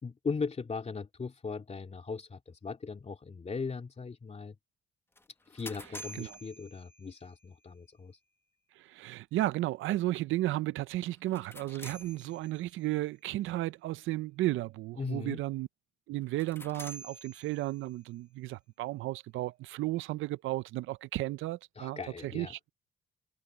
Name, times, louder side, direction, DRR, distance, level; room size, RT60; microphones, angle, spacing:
voice 1, 0.0-4.5 5.5-8.2 15.0-15.4 21.8-22.5, left 4 dB, 35° left, 2.9 m, -38 dB
sound 1, 5.2-7.4 11.2-12.9 16.2-18.0, equal, 10° left, 0.9 m, -48 dB
voice 2, 8.8-15.7 16.1-22.6, right 16 dB, 85° right, 0.6 m, -34 dB
cardioid pair, 90°, 20 cm